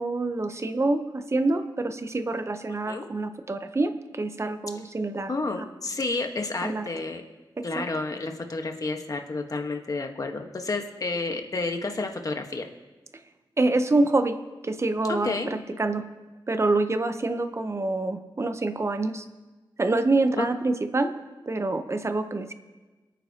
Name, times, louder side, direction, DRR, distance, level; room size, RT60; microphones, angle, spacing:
voice 1, 0.0-5.3 6.6-6.9 7.6-7.9 13.6-14.4 14.6-16.1 16.5-19.2 19.8-21.1 21.5-22.5, right 2 dB, 35° right, 9 dB, 0.8 m, -26 dB
voice 2, 5.3-7.2 7.6-12.7 15.2-15.5 20.4-20.5, left 3 dB, 45° left, 4 dB, 1.3 m, -30 dB
27.0 x 9.3 x 2.9 m, 1.2 s
wide cardioid pair, 100°, 8 cm